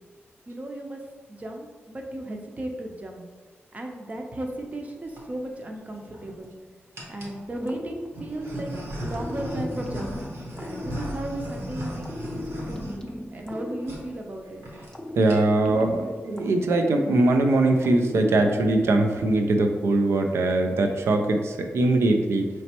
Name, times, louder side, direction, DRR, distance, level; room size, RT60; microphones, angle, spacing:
voice 1, 0.5-1.0 1.3-3.2 3.7-6.5 7.1-8.7 9.0-10.2 10.6-14.6, right 1 dB, 35° right, 2 dB, 0.6 m, -35 dB
sound 1, 4.8-5.2 5.9-6.5 6.9-7.4 8.1-13.6 13.8-14.0 14.3-14.4 14.6-14.9 15.2-15.7, equal, 75° right, 1.0 m, -36 dB
sound 2, 7.7-8.7 9.1-11.5 12.0-14.4 14.9-17.3 17.8-19.3, left 1 dB, 15° left, 0.5 m, -38 dB
voice 2, 15.2-22.5, right 2 dB, 90° right, 5 dB, 0.4 m, -21 dB
4.2 x 3.1 x 2.9 m, 1.4 s
wide cardioid pair, 90°, 4 cm